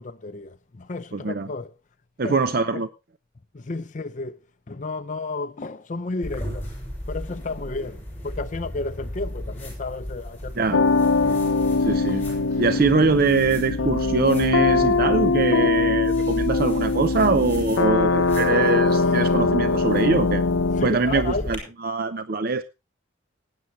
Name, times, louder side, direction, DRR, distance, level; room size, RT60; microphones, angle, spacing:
voice 1, 0.0-1.7 2.2-2.4 2.7-2.9 3.5-4.4 4.7-6.7 7.1-11.1 12.1-12.2 20.8-21.5, left 3 dB, 40° left, 0.5 m, -32 dB
voice 2, 1.1-1.5 2.2-2.9 10.6-10.8 11.8-12.3 12.6-20.4 20.8-22.6, right 4 dB, 50° right, 0.6 m, -23 dB
sound 1, 6.2-21.6, equal, 10° left, 6.3 m, -35 dB
sound 2, 10.7-20.9, left 3 dB, 90° left, 0.7 m, -22 dB
Growling, 11.6-13.9 14.2-14.6 14.9-15.0, left 1 dB, 15° right, 6.0 m, -54 dB
18.5 x 9.6 x 3.0 m
head